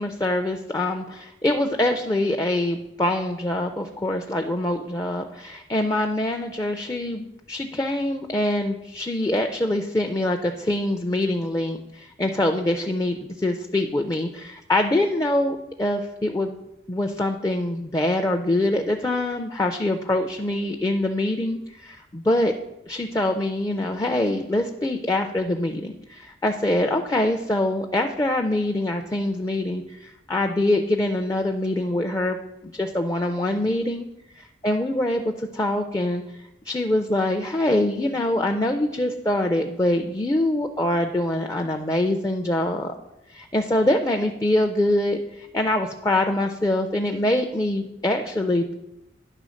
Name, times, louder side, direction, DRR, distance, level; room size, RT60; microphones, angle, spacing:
voice 1, 0.0-16.6 16.9-22.5 22.9-32.4 32.6-34.1 34.3-36.2 36.7-42.9 43.3-48.7, left 1 dB, 20° left, 4 dB, 0.4 m, -24 dB
10.0 x 3.5 x 6.3 m, 0.91 s
head